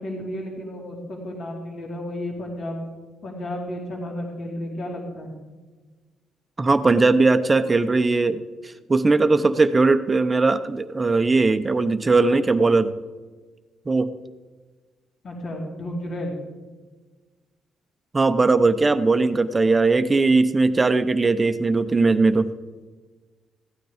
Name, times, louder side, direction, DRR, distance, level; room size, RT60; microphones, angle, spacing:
voice 1, 0.0-2.8 3.2-5.3 15.2-16.3, left 1 dB, 55° left, -1 dB, 2.8 m, -32 dB
voice 2, 6.6-8.4 8.9-12.9 13.9-14.1 18.1-22.5, right 3 dB, 25° right, 11 dB, 0.7 m, -19 dB
15.0 x 9.3 x 5.0 m, 1.3 s
cardioid pair, 90°, 0 cm